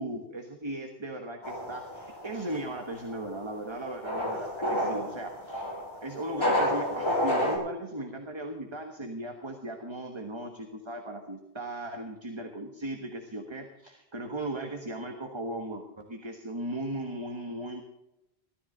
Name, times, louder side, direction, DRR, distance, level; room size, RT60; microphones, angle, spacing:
voice 1, 0.0-5.7 6.0-17.8, right 1 dB, 25° right, 4 dB, 1.3 m, -37 dB
sound 1, 1.4-7.6, left 1 dB, 25° left, 5.0 m, -30 dB
16.0 x 13.5 x 3.9 m, 0.89 s
omnidirectional pair, 1.1 m